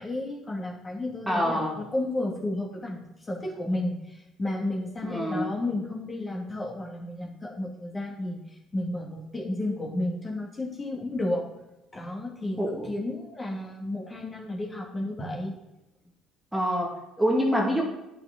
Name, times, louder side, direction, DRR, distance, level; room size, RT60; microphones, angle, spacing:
voice 1, 0.0-1.6 1.9-4.0 4.4-8.4 8.7-11.4 11.9-15.5, left 1 dB, 30° left, -1 dB, 2.1 m, -32 dB
voice 2, 1.3-1.8 5.0-5.5 12.6-13.0 16.5-17.8, equal, 5° right, -2 dB, 1.9 m, -26 dB
9.7 x 6.0 x 3.8 m, 0.98 s
supercardioid pair, 70°, 0 cm